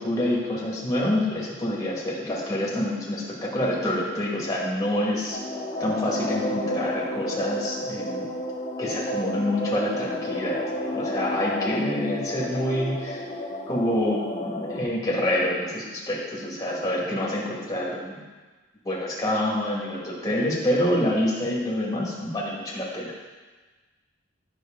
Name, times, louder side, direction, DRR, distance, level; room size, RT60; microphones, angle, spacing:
voice 1, 0.0-5.4 5.8-8.3 8.8-10.6 10.9-13.2 13.7-18.2 18.8-23.1, left 1 dB, 20° left, -5 dB, 2.1 m, -27 dB
sound 1, 5.3-14.8, left 1 dB, 40° left, 1.2 m, -31 dB
9.4 x 6.4 x 3.8 m, 1.3 s
head